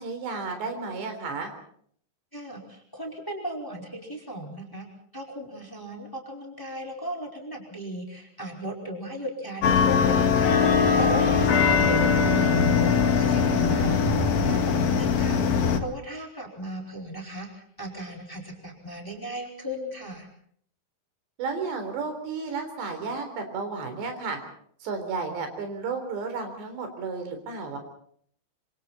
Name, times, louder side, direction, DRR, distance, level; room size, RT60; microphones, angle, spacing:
voice 1, 0.0-1.5 13.4-14.1 21.4-24.4 24.8-27.8, right 4 dB, 85° right, 6 dB, 6.0 m, -33 dB
voice 2, 2.3-4.9 5.1-13.9 14.3-20.3, equal, 5° left, 1 dB, 4.5 m, -36 dB
sound 1, 9.6-15.8, left 6 dB, 60° left, 3.4 m, -21 dB
27.0 x 25.5 x 4.3 m, 0.62 s
omnidirectional pair, 4.8 m